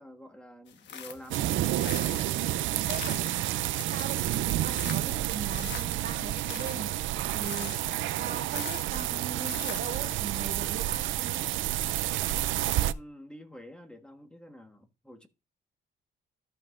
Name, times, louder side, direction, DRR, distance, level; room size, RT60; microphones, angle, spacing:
voice 1, 0.0-1.6 12.9-15.3, equal, 5° left, 1.2 m, -48 dB
sound 1, 0.7-10.3, left 8 dB, 70° left, 1.2 m, -44 dB
sound 2, 1.3-12.9, right 14 dB, 85° right, 0.5 m, -30 dB
voice 2, 2.9-3.6 3.9-7.7 8.2-11.4, right 6 dB, 55° right, 1.8 m, -40 dB
13.5 x 5.5 x 2.5 m
cardioid pair, 115°, 19 cm